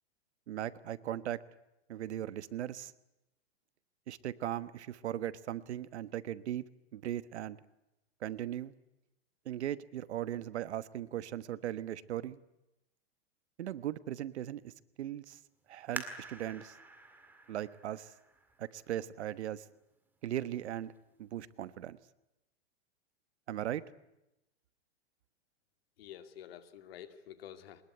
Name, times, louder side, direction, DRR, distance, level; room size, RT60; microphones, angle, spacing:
voice 1, 0.5-1.4 1.9-2.9 4.1-6.6 6.9-7.6 8.2-8.7 9.4-12.4 13.6-14.7 15.0-15.4 15.7-16.8 17.5-18.1 18.6-19.6 20.2-20.9 21.2-22.0 23.5-23.8, right 11 dB, 85° right, 15 dB, 1.3 m, -38 dB
sound 1, 15.9-19.3 19.9-20.0 20.6-21.0 21.4-21.5, right 3 dB, 5° right, 1.9 m, -47 dB
voice 2, 26.0-27.8, left 10 dB, 60° left, 9 dB, 2.3 m, -49 dB
22.5 x 20.5 x 9.6 m, 0.90 s
supercardioid pair, 160°, 33 cm